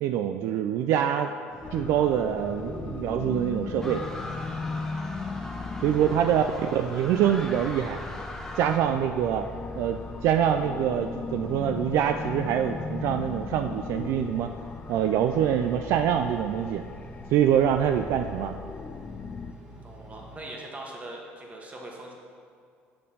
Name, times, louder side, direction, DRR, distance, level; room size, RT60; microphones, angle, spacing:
voice 1, 0.0-1.3 1.7-4.0 5.8-6.4 6.7-8.0 8.6-9.5 9.8-14.5 14.9-16.8 17.3-18.5, right 9 dB, 75° right, 6 dB, 0.3 m, -25 dB
Engine, 1.5-20.4, right 1 dB, 15° right, 1.7 m, -47 dB
sound 1, 1.6-19.5, left 5 dB, 30° left, 0.3 m, -38 dB
sound 2, 3.8-8.8, left 1 dB, 10° left, 0.9 m, -40 dB
voice 2, 5.6-6.2 19.8-22.1, right 2 dB, 30° right, -1 dB, 1.6 m, -42 dB
6.7 x 5.3 x 5.5 m, 2.3 s
supercardioid pair, 95°, 5 cm